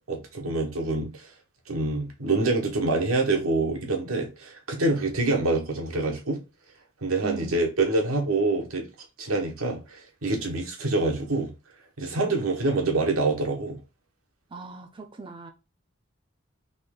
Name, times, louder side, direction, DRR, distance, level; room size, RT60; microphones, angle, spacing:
voice 1, 0.1-1.2 1.7-6.4 7.0-8.8 9.2-11.5 12.0-13.8, right 2 dB, 90° right, 1.3 m, -26 dB
voice 2, 7.2-7.7 12.2-12.4 14.5-15.5, right 4 dB, 25° right, 0.5 m, -39 dB
4.1 x 3.1 x 3.7 m
head